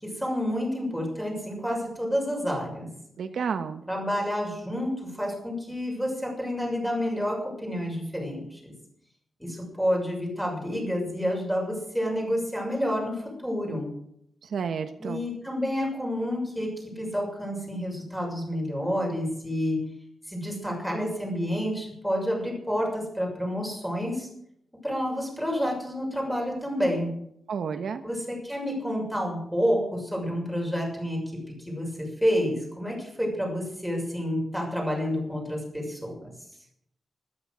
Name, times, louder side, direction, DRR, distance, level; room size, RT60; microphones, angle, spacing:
voice 1, 0.0-2.9 3.9-8.7 9.4-13.9 15.0-19.8 20.3-24.3 24.8-27.1 28.0-36.3, equal, ahead, 0 dB, 6.4 m, -29 dB
voice 2, 3.2-3.8 14.5-15.2 27.5-28.0, right 6 dB, 70° right, 8 dB, 1.2 m, -30 dB
14.5 x 13.5 x 6.3 m, 0.72 s
wide cardioid pair, 160°, 0 cm